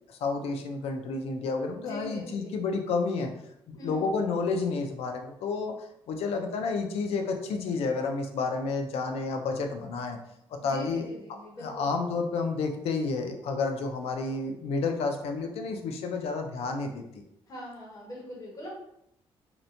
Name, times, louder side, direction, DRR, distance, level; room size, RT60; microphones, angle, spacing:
voice 1, 0.0-3.3 3.7-5.7 6.1-10.2 10.6-11.0 11.6-17.2, left 4 dB, 80° left, 5 dB, 0.4 m, -30 dB
voice 2, 1.8-2.6 3.8-4.1 10.6-12.0 17.5-18.7, equal, 35° left, -4 dB, 1.0 m, -42 dB
2.8 x 2.1 x 2.6 m, 0.77 s
cardioid pair, 130°, 10 cm